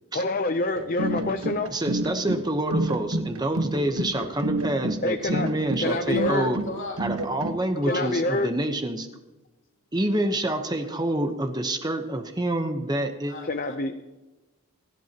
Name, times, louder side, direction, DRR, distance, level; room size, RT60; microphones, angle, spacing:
voice 1, 0.1-1.7 5.0-5.5 5.8-6.5 7.8-8.5 13.4-14.0, left 2 dB, 40° left, 7 dB, 0.7 m, -27 dB
sound 1, 0.8-7.6, right 1 dB, 80° right, 1.3 m, -29 dB
voice 2, 1.7-6.6 7.0-9.1 9.9-13.3, right 1 dB, 20° right, 6 dB, 1.0 m, -27 dB
voice 3, 5.8-7.0 7.7-8.1 13.3-14.2, left 1 dB, 60° left, 1 dB, 2.8 m, -35 dB
27.5 x 11.5 x 3.0 m, 1.1 s
head